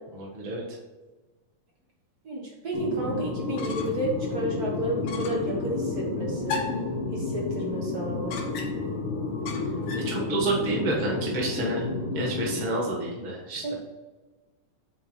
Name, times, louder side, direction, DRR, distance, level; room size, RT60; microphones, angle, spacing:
voice 1, 0.1-0.6 9.9-11.9 12.1-13.8, right 2 dB, 75° right, -4 dB, 0.4 m, -29 dB
voice 2, 2.2-6.6 7.1-8.4 13.6-13.8, right 1 dB, 45° right, -3 dB, 1.2 m, -31 dB
sound 1, 2.7-12.6, left 3 dB, 55° left, 1.5 m, -31 dB
sound 2, 3.4-4.1 4.4-4.5 5.0-5.5 6.5-6.9 8.3-8.9 9.5-10.2, left 4 dB, 85° left, 1.2 m, -36 dB
7.8 x 4.7 x 5.0 m, 1.2 s
omnidirectional pair, 3.8 m